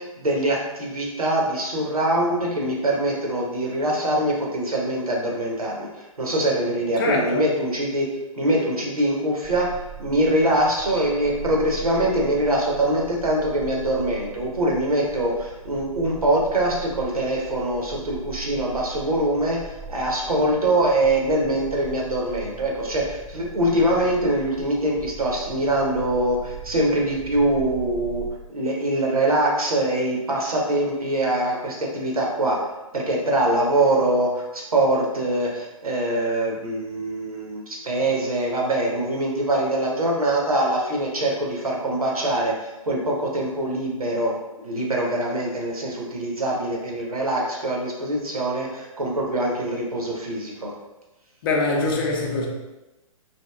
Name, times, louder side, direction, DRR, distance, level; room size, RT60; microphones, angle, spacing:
voice 1, 0.0-8.1 8.4-28.2 28.5-32.6 32.9-50.7, right 1 dB, 85° right, 0.8 m, -23 dB
voice 2, 7.0-7.4 51.4-52.5, left 3 dB, 40° left, 0.5 m, -23 dB
sound 1, 9.4-28.3, right 7 dB, 10° right, 0.3 m, -40 dB
2.8 x 2.7 x 2.2 m
figure-of-eight pair, 125°, 18 cm